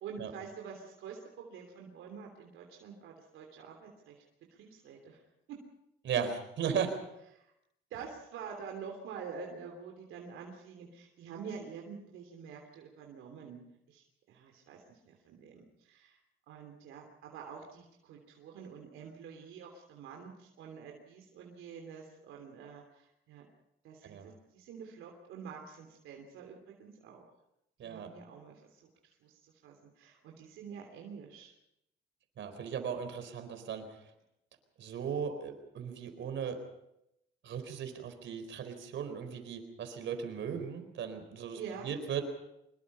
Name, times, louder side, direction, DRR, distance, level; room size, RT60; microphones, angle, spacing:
voice 1, 0.0-4.2 4.5-5.2 7.3-7.5 7.9-16.2 16.5-23.5 23.8-27.3 27.8-31.5 41.5-41.9, right 6 dB, 90° right, 1 dB, 3.2 m, -47 dB
voice 2, 6.0-6.9 24.0-24.3 27.8-28.1 32.4-33.9 34.8-36.6 37.4-42.2, right 7 dB, 70° right, 8 dB, 4.3 m, -37 dB
24.5 x 22.0 x 5.6 m, 0.84 s
cardioid pair, 90°, 20 cm